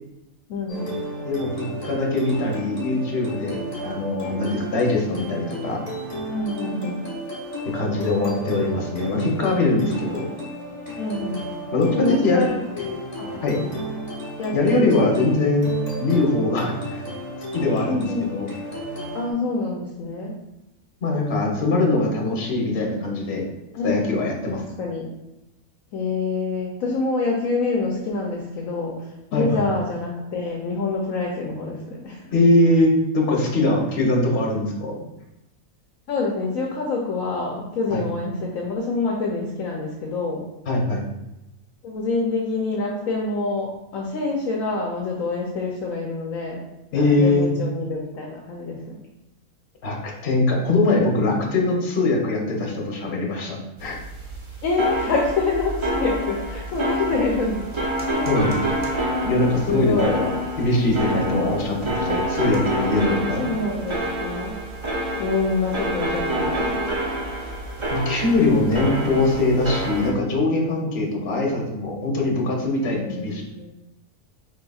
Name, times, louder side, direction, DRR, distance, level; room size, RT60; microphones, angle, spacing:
voice 1, 0.5-1.0 6.3-7.0 11.0-11.4 11.9-13.7 14.4-15.5 17.9-18.4 19.1-20.3 23.7-24.2 24.5-25.1 25.9-32.2 36.1-40.4 41.8-46.6 46.9-49.0 54.6-57.7 58.0-58.3 59.7-60.4 63.2-64.6 65.2-66.8 71.2-71.5 72.9-73.7, left 3 dB, 70° left, -1 dB, 1.0 m, -26 dB
sound 1, 0.7-19.3, equal, 30° left, 1.2 m, -33 dB
voice 2, 1.8-5.8 7.6-10.3 11.7-12.4 13.4-13.5 14.5-15.7 16.0-17.0 17.5-18.5 21.0-23.4 23.8-24.6 29.3-29.6 32.3-35.0 37.9-38.0 40.7-41.0 46.9-47.5 49.8-54.0 58.3-58.6 59.2-60.3 60.6-63.5 67.9-73.4, left 2 dB, 50° left, 0 dB, 1.1 m, -22 dB
sound 2, 53.8-70.1, right 1 dB, 45° right, 0.4 m, -27 dB
4.8 x 3.8 x 2.3 m, 0.92 s
omnidirectional pair, 1.5 m